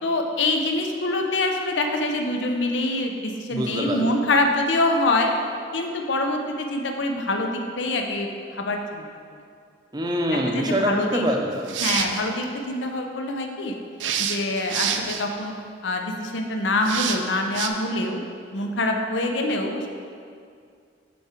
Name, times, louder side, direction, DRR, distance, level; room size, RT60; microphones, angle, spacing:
voice 1, 0.0-5.3 5.7-9.0 10.5-11.3 11.8-13.8 14.2-15.5 15.8-18.2 18.5-19.9, left 2 dB, 80° left, 3 dB, 0.6 m, -25 dB
voice 2, 3.5-4.2 9.9-11.8, equal, 20° right, 1 dB, 0.6 m, -25 dB
sound 1, 11.5-12.2 14.0-15.2 16.8-17.2 17.5-17.7, right 8 dB, 90° right, 0.5 m, -27 dB
7.1 x 4.6 x 4.4 m, 2.3 s
head